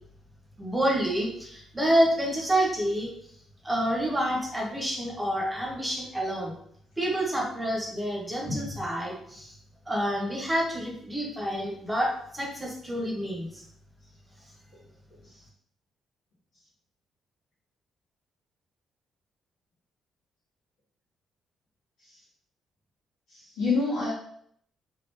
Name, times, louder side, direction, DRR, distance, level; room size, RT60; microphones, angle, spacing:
voice 1, 0.6-3.1 3.6-6.5 7.0-9.5 9.9-13.6, right 1 dB, 15° right, -1 dB, 1.0 m, -28 dB
voice 2, 23.3-24.1, left 4 dB, 90° left, -11 dB, 1.7 m, -28 dB
3.7 x 3.1 x 3.3 m, 0.67 s
cardioid pair, 90°, 0 cm